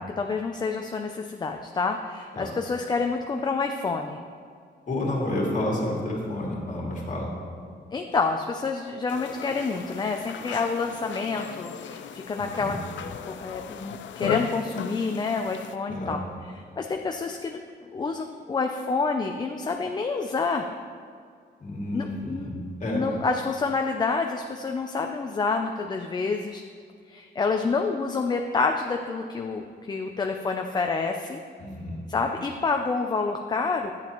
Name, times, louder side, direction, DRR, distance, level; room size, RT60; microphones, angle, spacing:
voice 1, 0.2-4.2 7.9-12.8 13.3-16.2 16.8-17.6 17.9-20.7 21.9-22.6 22.9-26.6 27.1-31.4 32.1-33.9, left 4 dB, 25° left, 4 dB, 0.4 m, -28 dB
voice 2, 4.9-7.3 12.4-12.8 15.9-16.2 21.6-22.5 22.8-23.0 31.6-32.0, left 1 dB, 45° left, -3 dB, 2.2 m, -30 dB
sound 1, 9.1-15.8, left 8 dB, 90° left, 0.5 m, -36 dB
11.5 x 8.9 x 3.0 m, 2.1 s
wide cardioid pair, 160°, 19 cm